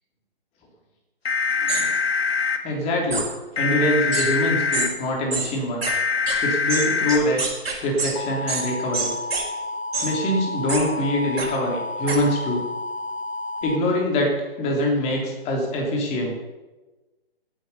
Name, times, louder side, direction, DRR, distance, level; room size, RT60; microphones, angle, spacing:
sound 1, 1.3-2.6 3.6-4.9 5.9-7.2 8.2-13.8, left 4 dB, 80° left, 1.8 m, -26 dB
sound 2, 1.7-1.8 3.1-3.3 4.1-4.3 4.7-4.9 5.3-5.5 5.8-5.9 6.3-6.4 6.7-8.1 8.5-8.6 8.9-9.4 9.9-10.1 10.7-10.8 11.4-11.5 12.1-12.2, right 4 dB, 75° right, 4.7 m, -26 dB
voice 1, 2.6-3.3 3.6-5.9 6.4-7.5 7.8-9.1 10.0-12.6 13.6-16.4, left 1 dB, 20° left, 0 dB, 3.3 m, -24 dB
17.0 x 9.0 x 5.6 m, 1.2 s
figure-of-eight pair, 135°, 30 cm